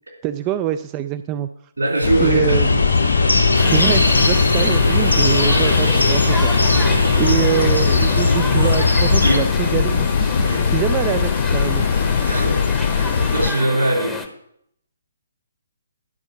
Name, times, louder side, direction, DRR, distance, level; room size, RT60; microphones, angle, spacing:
voice 1, 0.2-1.5 2.2-2.8 3.7-6.8 7.2-11.9, right 12 dB, 25° right, 11 dB, 0.3 m, -24 dB
voice 2, 1.8-2.7 9.2-9.4 10.4-10.7 12.0-14.1, right 2 dB, 70° right, 0 dB, 3.7 m, -22 dB
sound 1, 2.0-13.5, left 6 dB, 50° left, 0.4 m, -20 dB
sound 2, 2.5-9.4, left 2 dB, 90° left, 1.6 m, -19 dB
sound 3, 3.5-14.3, left 2 dB, 5° left, 0.8 m, -30 dB
11.0 x 5.4 x 6.6 m, 0.73 s
figure-of-eight pair, 135°, 0 cm